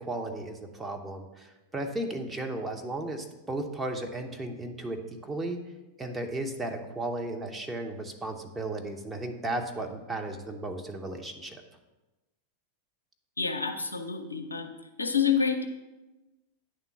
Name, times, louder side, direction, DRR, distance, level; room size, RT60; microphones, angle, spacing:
voice 1, 0.0-5.6 6.0-11.6, right 2 dB, 10° right, 3 dB, 0.9 m, -35 dB
voice 2, 13.4-14.7 15.0-15.6, left 6 dB, 85° left, 4 dB, 0.7 m, -28 dB
9.3 x 3.7 x 5.9 m, 1.1 s
figure-of-eight pair, 90°, 0 cm